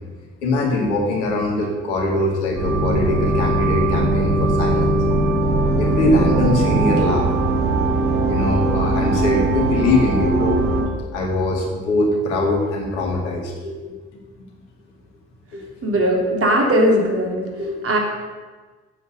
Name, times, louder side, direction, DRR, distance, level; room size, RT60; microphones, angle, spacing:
voice 1, 0.4-5.0 5.8-7.3 8.3-10.6 11.1-13.9 15.5-15.9 17.6-17.7, left 2 dB, 75° left, 0 dB, 2.3 m, -22 dB
sound 1, 2.6-10.8, right 2 dB, 70° right, 2.8 m, -19 dB
voice 2, 15.8-17.4 17.8-18.0, equal, 40° right, 0 dB, 3.5 m, -18 dB
10.0 x 8.3 x 7.9 m, 1.4 s
figure-of-eight pair, 50°, 35 cm